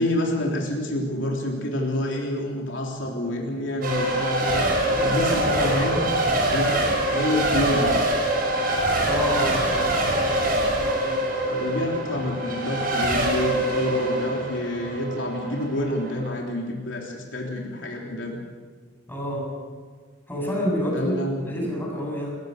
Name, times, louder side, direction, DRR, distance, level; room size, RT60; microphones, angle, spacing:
voice 1, 0.0-6.1 6.5-8.0 11.4-18.4 20.8-21.7, left 1 dB, 75° left, -1 dB, 3.5 m, -28 dB
Race car auto racing / Accelerating revving vroom / Mechanisms, 3.8-16.3, right 1 dB, 50° right, 5.9 m, -24 dB
voice 2, 9.1-10.0 19.1-19.5 20.3-21.1 21.5-22.4, equal, 10° left, -2 dB, 7.6 m, -28 dB
27.5 x 16.0 x 6.7 m, 1.5 s
head